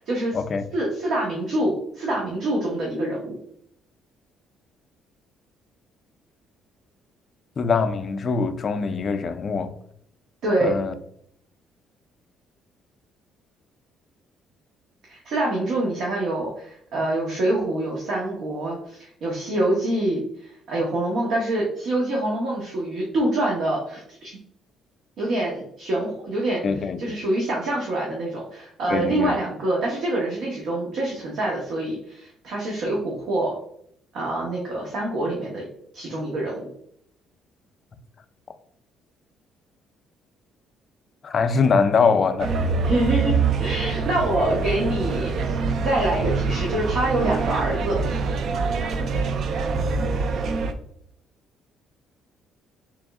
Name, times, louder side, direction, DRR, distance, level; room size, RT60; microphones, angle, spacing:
voice 1, 0.0-0.4 0.7-3.3 10.4-10.7 15.1-24.4 25.2-33.5 34.1-35.7 35.9-36.7 42.8-48.0, right 1 dB, 65° right, 0.9 m, -26 dB
voice 2, 7.6-9.7 10.6-10.9 26.6-27.2 28.9-29.3 41.2-42.5, left 5 dB, 35° left, 0.3 m, -23 dB
sound 1, 42.4-50.7, right 4 dB, 50° right, 0.3 m, -25 dB
3.4 x 3.0 x 3.5 m
cardioid pair, 160°, 0 cm